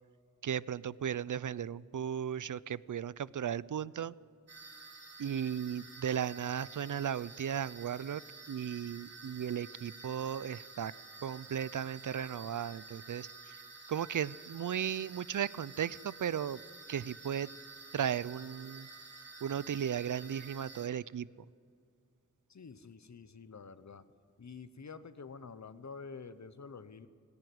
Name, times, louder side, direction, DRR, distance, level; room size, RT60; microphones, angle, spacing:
voice 1, 0.4-4.1 5.2-8.2 8.5-10.9 11.2-13.3 13.9-16.6 16.9-17.5 17.9-18.9 19.4-21.3, right 9 dB, 80° right, 20 dB, 0.5 m, -36 dB
sound 1, 4.5-20.9, right 3 dB, 55° right, 3.2 m, -51 dB
voice 2, 22.5-24.0 24.4-27.1, left 5 dB, 65° left, 13 dB, 1.1 m, -48 dB
18.5 x 17.0 x 9.5 m, 2.3 s
wide cardioid pair, 50°, 31 cm